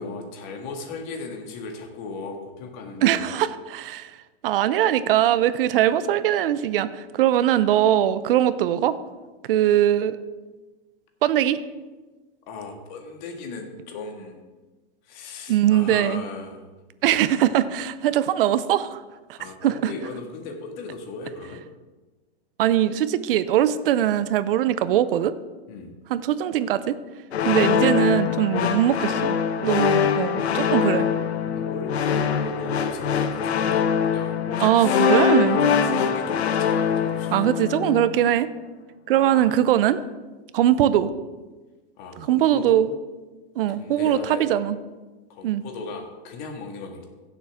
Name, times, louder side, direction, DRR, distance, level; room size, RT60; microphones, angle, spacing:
voice 1, 0.0-3.2 12.5-14.4 15.1-16.6 19.4-21.6 25.7-25.9 31.4-35.0 35.4-37.4 39.1-39.6 42.0-42.8 43.8-44.5 45.3-47.0, left 3 dB, 45° left, 3 dB, 1.9 m, -37 dB
voice 2, 3.0-4.1 4.4-9.0 9.4-10.2 11.2-11.6 15.5-16.2 17.0-19.0 19.3-19.9 22.6-25.3 26.1-27.0 27.4-29.4 29.6-31.1 34.6-35.6 37.3-38.5 39.1-40.0 40.5-41.1 42.2-42.9 43.6-44.8 45.4-45.6, right 11 dB, 60° right, 14 dB, 0.7 m, -21 dB
sound 1, 27.3-38.2, left 7 dB, 90° left, 1.0 m, -23 dB
16.0 x 7.2 x 3.6 m, 1.2 s
hypercardioid pair, 145°, 31 cm